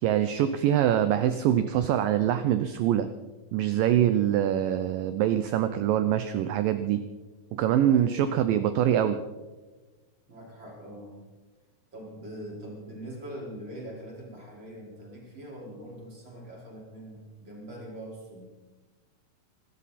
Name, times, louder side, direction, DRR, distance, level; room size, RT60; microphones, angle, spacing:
voice 1, 0.0-3.1 3.5-7.0 7.5-9.2, right 11 dB, 90° right, 10 dB, 1.9 m, -24 dB
voice 2, 7.9-8.4 10.3-11.2 11.9-18.5, right 1 dB, 25° right, -4 dB, 5.2 m, -42 dB
26.0 x 13.0 x 4.2 m, 1.2 s
omnidirectional pair, 4.9 m